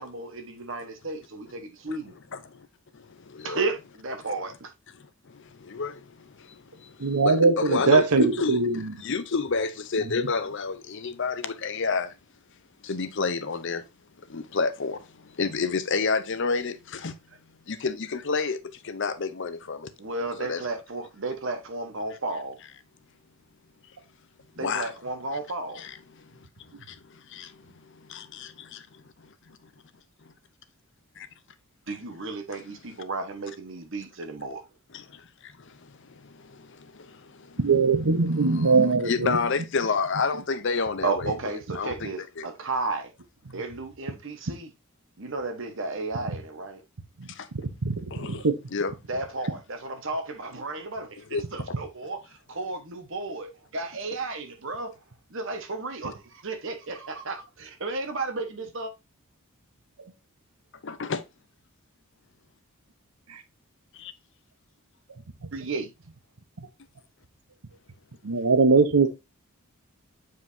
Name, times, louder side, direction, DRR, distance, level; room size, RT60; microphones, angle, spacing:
voice 1, 0.0-2.1 3.4-4.7 20.0-22.6 24.6-25.8 31.9-34.6 41.0-43.1 43.4-44.7 45.2-46.8 49.1-52.2 52.5-54.9 55.3-58.9 65.5-65.9, right 3 dB, 60° right, 1.3 m, -33 dB
voice 2, 2.3-2.7 2.9-3.6 5.0-12.1 12.8-13.8 14.3-17.2 17.7-19.9 20.4-20.6 24.6-24.9 25.8-26.5 26.9-29.0 29.5-29.6 31.2-31.3 34.9-37.6 38.3-41.3 41.7-42.5 47.3-47.5 48.1-48.5 48.7-48.9 51.3-51.4 60.8-61.2 63.9-64.1, left 4 dB, 55° left, 0.7 m, -30 dB
voice 3, 7.0-8.9 10.2-10.3 37.6-39.4 47.8-48.6 60.0-60.1 63.3-63.4 68.2-69.1, right 4 dB, 85° right, 1.0 m, -21 dB
7.8 x 4.8 x 2.7 m
head